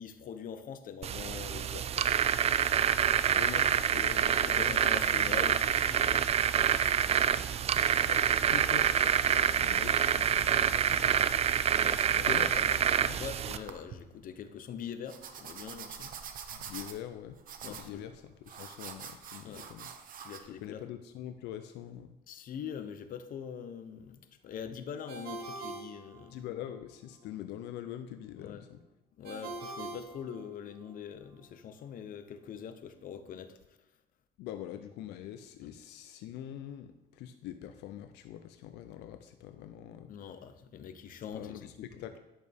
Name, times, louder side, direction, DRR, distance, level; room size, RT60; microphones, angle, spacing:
voice 1, 0.0-2.6 4.5-6.4 7.9-8.8 11.7-12.5 13.2-16.2 17.6-18.1 19.4-19.7 20.2-20.8 22.3-26.4 28.4-28.7 29.2-33.8 35.6-35.7 40.1-41.6 41.9-42.0, left 7 dB, 55° left, 9 dB, 0.8 m, -43 dB
sound 1, 1.0-13.6, right 9 dB, 40° right, 0.4 m, -27 dB
voice 2, 3.3-4.8 8.0-8.2 8.5-11.4 12.1-13.2 16.5-17.4 17.6-19.9 20.4-22.2 26.3-28.8 34.4-40.1 41.3-42.2, left 11 dB, 85° left, 8 dB, 0.5 m, -44 dB
sound 2, 12.8-13.0 13.5-14.0 15.1-20.4, right 7 dB, 55° right, 0.9 m, -45 dB
Ringtone, 25.1-26.7 29.2-30.9, right 3 dB, 70° right, 2.6 m, -43 dB
10.5 x 6.4 x 3.5 m, 0.97 s
cardioid pair, 110°, 17 cm